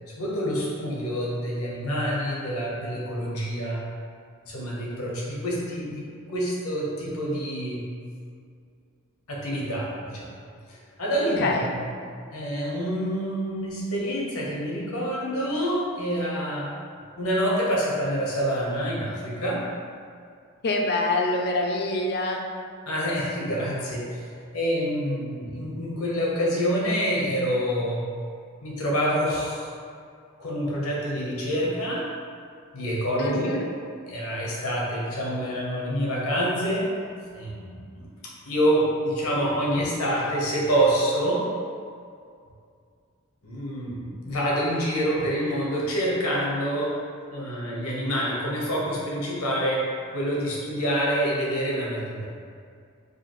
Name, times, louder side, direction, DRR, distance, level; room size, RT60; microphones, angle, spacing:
voice 1, 0.1-3.8 4.4-6.0 6.3-7.8 9.3-10.3 10.7-11.8 12.3-16.7 17.2-19.6 22.9-24.3 24.5-28.0 28.6-29.7 30.4-32.1 32.7-33.7 34.1-36.9 37.3-38.1 38.4-41.4 43.4-47.0 47.3-52.3, equal, 90° left, -5 dB, 1.0 m, -27 dB
voice 2, 11.2-11.7 20.6-22.5 33.2-33.7, left 2 dB, 50° left, 1 dB, 0.4 m, -26 dB
4.8 x 2.5 x 3.0 m, 2.2 s
head